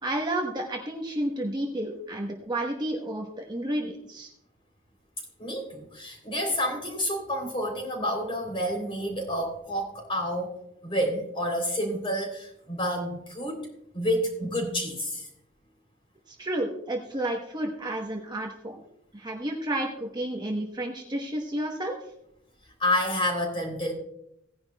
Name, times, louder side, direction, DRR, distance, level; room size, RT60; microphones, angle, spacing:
voice 1, 0.0-4.3 16.3-18.8 19.1-22.0, right 1 dB, 20° right, 1 dB, 1.1 m, -31 dB
voice 2, 5.4-10.5 10.8-13.6 13.9-15.3 22.8-23.9, equal, 25° left, 2 dB, 3.4 m, -29 dB
17.5 x 10.5 x 2.3 m, 0.74 s
head